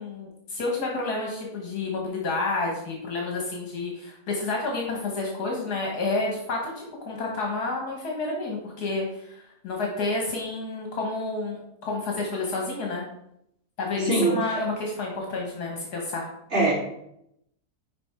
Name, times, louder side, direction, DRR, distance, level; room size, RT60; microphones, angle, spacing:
voice 1, 0.0-9.3 9.6-13.0 13.8-16.3, left 3 dB, 75° left, 0 dB, 1.8 m, -30 dB
voice 2, 14.0-14.4 16.5-16.7, right 2 dB, 45° right, -7 dB, 3.3 m, -22 dB
6.0 x 5.0 x 4.7 m, 0.78 s
omnidirectional pair, 1.7 m